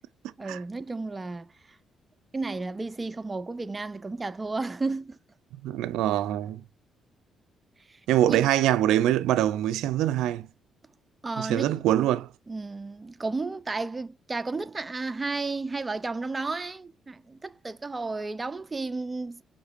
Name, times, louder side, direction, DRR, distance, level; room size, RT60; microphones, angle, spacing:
voice 1, 0.4-1.5 2.3-5.2 7.9-8.0 8.3-8.4 11.2-11.8 12.5-19.4, right 3 dB, 25° right, 0.4 m, -33 dB
voice 2, 5.6-6.6 8.1-10.5 11.4-12.3, right 12 dB, 90° right, 0.4 m, -24 dB
5.8 x 3.6 x 2.4 m
cardioid pair, 90°, 0 cm